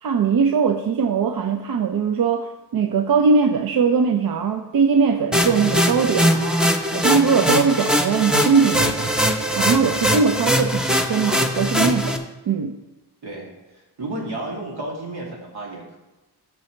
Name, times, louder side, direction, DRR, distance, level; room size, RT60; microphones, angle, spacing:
voice 1, 0.0-9.1 9.6-12.8, right 5 dB, 65° right, 6 dB, 0.6 m, -21 dB
sound 1, 5.3-12.2, equal, ahead, 0.6 m, -21 dB
voice 2, 14.0-16.0, right 2 dB, 80° right, -2 dB, 2.4 m, -32 dB
13.0 x 6.1 x 3.1 m, 1.1 s
wide cardioid pair, 140°, 39 cm